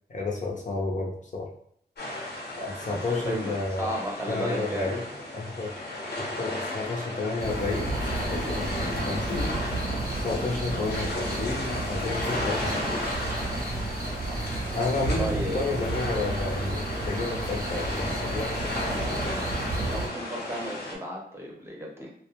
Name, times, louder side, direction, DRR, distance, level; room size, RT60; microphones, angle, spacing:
voice 1, 0.1-1.5 2.6-3.9 4.3-5.0 5.3-5.7 6.4-9.6 10.2-13.1 14.7-15.3 15.5-18.7, left 3 dB, 50° left, -1 dB, 0.6 m, -31 dB
sound 1, 2.0-21.0, left 1 dB, 80° left, 0.8 m, -34 dB
voice 2, 2.9-5.0 15.2-15.5 19.9-22.1, right 1 dB, 15° right, -2 dB, 0.7 m, -34 dB
sound 2, 7.4-20.1, right 2 dB, 60° right, 0.6 m, -32 dB
2.2 x 2.2 x 2.9 m, 0.68 s
wide cardioid pair, 90°, 17 cm